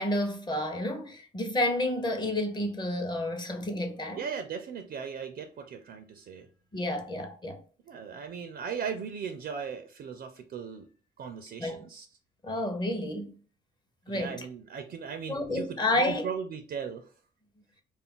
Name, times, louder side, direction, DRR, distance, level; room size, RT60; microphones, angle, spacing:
voice 1, 0.0-4.3 6.7-7.6 11.6-11.8 12.4-13.4 14.1-14.5 15.3-16.3, left 1 dB, 20° left, 0.7 m, -30 dB
voice 2, 4.2-6.5 7.9-10.9 11.2-12.1 14.1-15.8 16.1-17.1, right 6 dB, 55° right, 0.4 m, -38 dB
2.4 x 2.0 x 3.6 m
cardioid pair, 90°, 20 cm